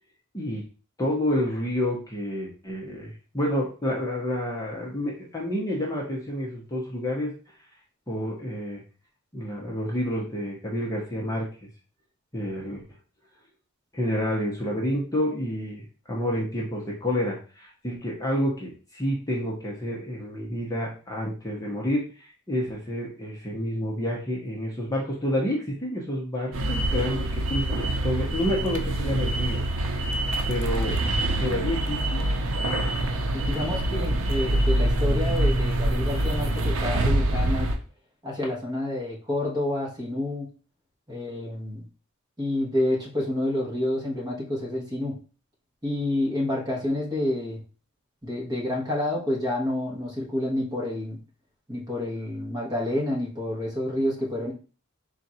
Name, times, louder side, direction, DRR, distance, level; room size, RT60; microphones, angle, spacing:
voice 1, 0.3-0.6 1.0-7.3 8.1-8.8 9.3-11.7 12.3-12.8 13.9-30.2 30.5-31.0 31.4-32.2, equal, 15° left, -3 dB, 0.9 m, -29 dB
sound 1, 26.5-37.7, right 1 dB, 70° right, 0.7 m, -25 dB
voice 2, 33.3-37.7 38.2-40.5 41.1-41.8 42.4-45.1 45.8-47.6 48.2-51.2 51.7-54.5, left 1 dB, 20° right, -3 dB, 1.3 m, -28 dB
3.8 x 2.5 x 4.2 m, 0.36 s
head